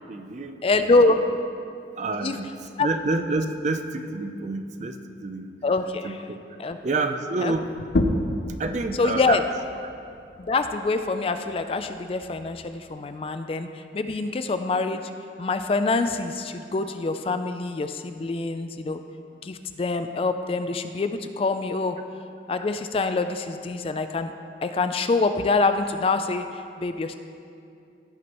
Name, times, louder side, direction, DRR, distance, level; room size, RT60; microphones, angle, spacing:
voice 1, 0.1-0.6 1.0-1.2 1.9-5.5 6.0-6.4 6.8-7.6 8.6-9.4, right 3 dB, 40° right, 7 dB, 0.5 m, -28 dB
voice 2, 0.6-1.2 2.2-2.3 2.8-2.9 5.6-6.1 6.6-6.8 7.4-7.5 9.0-9.4 10.4-13.7 13.9-15.1 15.4-19.0 19.4-22.0 22.5-24.3 24.6-27.2, left 3 dB, 30° left, 8 dB, 0.3 m, -25 dB
sound 1, 7.8-13.0, left 1 dB, 70° left, 0.6 m, -31 dB
16.0 x 6.2 x 3.0 m, 2.5 s
head